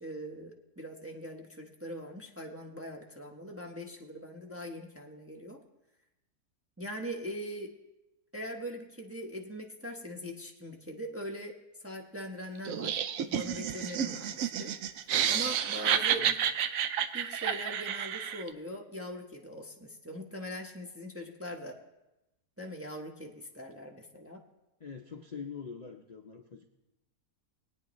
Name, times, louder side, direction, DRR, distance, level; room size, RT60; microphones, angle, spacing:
voice 1, 0.0-5.6 6.8-7.7 8.3-11.6 11.8-13.0 13.3-14.7 15.3-16.4 17.1-21.8 22.6-24.4, equal, 10° right, 0 dB, 0.7 m, -41 dB
Laughter, 12.7-18.5, right 9 dB, 70° right, 1.0 m, -30 dB
voice 2, 15.9-16.3 24.8-26.7, left 6 dB, 45° left, 3 dB, 0.5 m, -44 dB
21.5 x 9.2 x 3.1 m, 0.96 s
omnidirectional pair, 1.6 m